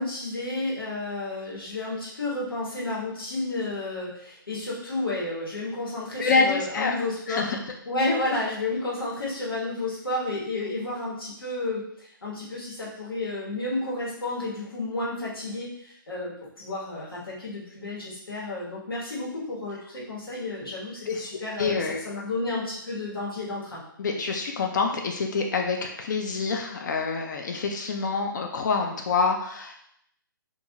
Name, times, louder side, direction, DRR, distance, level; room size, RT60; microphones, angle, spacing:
voice 1, 0.0-7.4 7.8-23.8, left 2 dB, 90° left, -6 dB, 1.3 m, -31 dB
voice 2, 6.2-6.9 7.3-7.6 21.1-21.3 21.6-22.0 24.0-29.8, left 4 dB, 55° left, 2 dB, 0.4 m, -26 dB
2.5 x 2.4 x 2.8 m, 0.72 s
hypercardioid pair, 140°, 12 cm